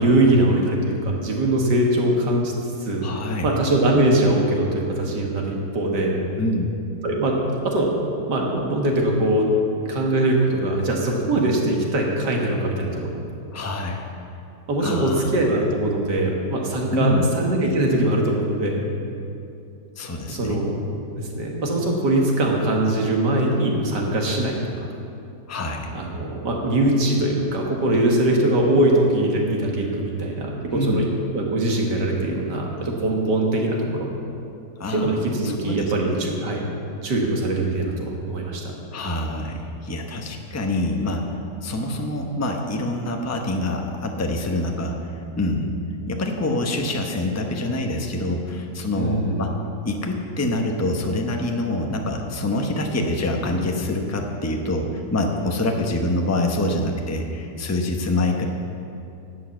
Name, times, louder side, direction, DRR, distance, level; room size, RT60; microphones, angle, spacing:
voice 1, 0.0-2.5 2.8-3.1 3.4-6.2 7.0-7.4 7.6-7.9 8.3-9.5 9.9-13.2 14.7-18.9 20.3-20.7 21.2-24.9 25.9-31.1 31.3-34.1 34.9-36.7 37.0-38.7 48.9-49.5, right 1 dB, 80° right, 0 dB, 2.2 m, -22 dB
voice 2, 3.0-3.5 6.4-6.7 13.5-14.1 14.8-15.3 16.9-17.3 19.9-20.7 25.5-26.0 30.7-31.0 34.8-36.3 38.9-41.2 41.6-45.7 46.1-49.5 49.8-58.5, left 2 dB, 15° left, 2 dB, 0.7 m, -26 dB
11.0 x 8.3 x 7.7 m, 2.6 s
omnidirectional pair, 1.8 m